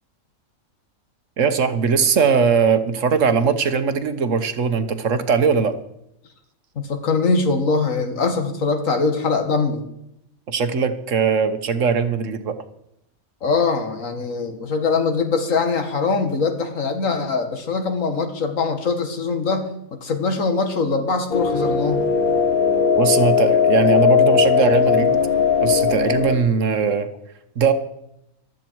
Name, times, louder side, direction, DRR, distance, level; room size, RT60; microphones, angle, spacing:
voice 1, 1.4-5.8 10.5-12.5 23.0-25.2 25.6-27.1 27.6-27.7, right 6 dB, 60° right, 10 dB, 1.4 m, -20 dB
voice 2, 6.8-9.8 13.4-19.7 20.0-22.1, left 4 dB, 65° left, 6 dB, 2.1 m, -22 dB
sound 1, 21.3-26.4, left 6 dB, 90° left, 2.4 m, -18 dB
15.0 x 12.5 x 4.6 m, 0.81 s
omnidirectional pair, 1.5 m